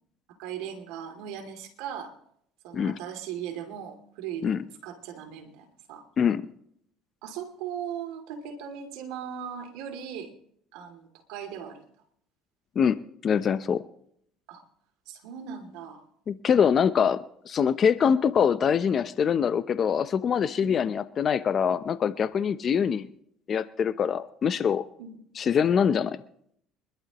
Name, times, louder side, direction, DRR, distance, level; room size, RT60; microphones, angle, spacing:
voice 1, 0.4-2.1 2.6-6.1 7.2-10.3 10.7-11.8 14.5-14.6 15.1-16.0 20.6-20.8 22.4-22.5 25.0-25.2, right 8 dB, 80° right, 5 dB, 2.6 m, -38 dB
voice 2, 13.2-13.8 16.3-23.1 23.5-24.8 25.4-26.2, left 7 dB, 45° left, 14 dB, 0.7 m, -24 dB
25.0 x 11.5 x 3.0 m, 0.69 s
supercardioid pair, 90°, 0 cm